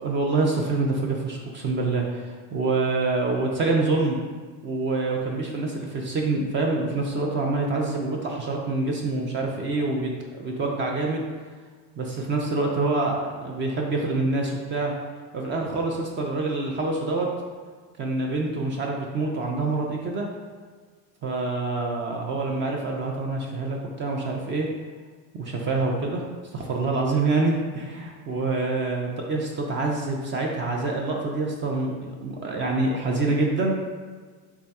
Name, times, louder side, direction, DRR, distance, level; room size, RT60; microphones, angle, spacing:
voice 1, 0.0-4.2 4.6-11.2 12.0-14.9 15.3-17.3 18.0-20.3 21.2-24.7 25.3-26.3 26.5-33.7, right 3 dB, 30° right, 0 dB, 0.4 m, -26 dB
3.4 x 2.2 x 4.1 m, 1.5 s
supercardioid pair, 110°, 42 cm